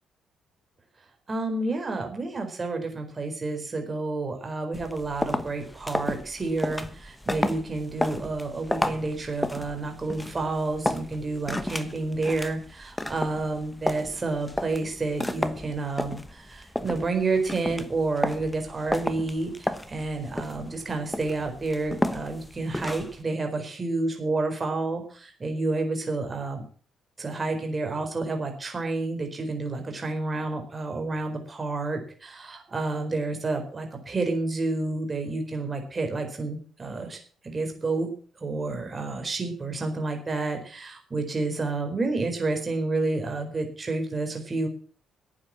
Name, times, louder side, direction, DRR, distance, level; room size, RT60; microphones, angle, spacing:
voice 1, 1.3-26.6 27.2-37.2 37.4-38.1 38.4-44.7, right 3 dB, 30° right, 4 dB, 4.3 m, -30 dB
sound 1, 4.7-23.2, left 1 dB, 10° left, 1.1 m, -32 dB
12.0 x 8.8 x 7.6 m, 0.43 s
cardioid pair, 110°, 0 cm